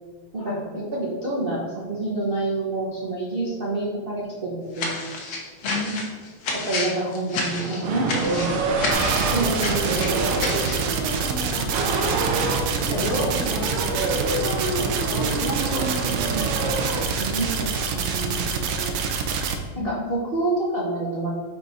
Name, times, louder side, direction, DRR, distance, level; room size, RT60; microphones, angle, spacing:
voice 1, 0.3-5.4 6.5-8.6 9.2-10.2 12.9-13.3 17.2-18.9 19.8-21.3, right 2 dB, 50° right, -7 dB, 0.6 m, -28 dB
sound 1, 4.7-10.9, left 3 dB, 65° left, 1.6 m, -30 dB
voice 2, 5.6-6.3 11.4-12.3 12.8-16.8 19.7-20.1, left 1 dB, 45° left, -3 dB, 0.9 m, -32 dB
sound 2, 7.5-17.1, right 3 dB, 90° right, 1.7 m, -27 dB
sound 3, 8.9-19.6, right 5 dB, 75° right, 1.3 m, -27 dB
5.2 x 4.1 x 4.6 m, 1.5 s
omnidirectional pair, 2.4 m